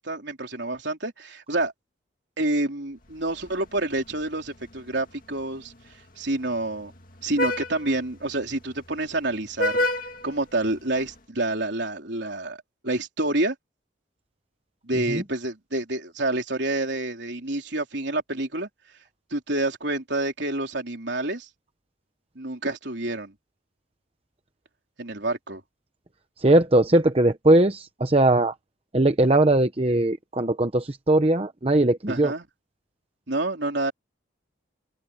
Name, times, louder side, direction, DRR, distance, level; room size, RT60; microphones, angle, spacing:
voice 1, 0.0-1.7 2.4-5.7 6.2-6.9 7.2-9.9 10.2-12.6 12.8-13.6 14.8-18.7 19.3-21.5 22.4-23.3 25.0-25.6 32.1-32.4 33.3-33.9, right 2 dB, 60° right, 3.7 m, -28 dB
Vehicle horn car horn honking, 3.1-11.2, left 1 dB, 45° left, 2.3 m, -33 dB
voice 2, 26.4-28.5 28.9-32.3, right 1 dB, 30° right, 0.9 m, -20 dB
head